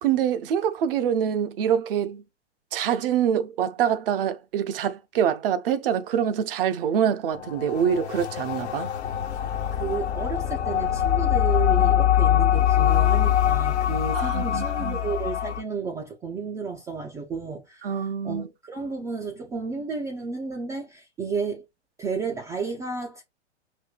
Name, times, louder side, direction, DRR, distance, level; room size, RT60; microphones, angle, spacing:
voice 1, 0.0-2.2 2.7-8.9 14.1-15.0 17.8-18.5, right 9 dB, 55° right, 0.6 m, -25 dB
sound 1, 7.3-15.6, left 11 dB, 70° left, 1.1 m, -23 dB
voice 2, 9.7-21.6 22.0-23.2, right 5 dB, 10° right, 0.3 m, -32 dB
5.0 x 2.6 x 2.3 m
figure-of-eight pair, 110°, 34 cm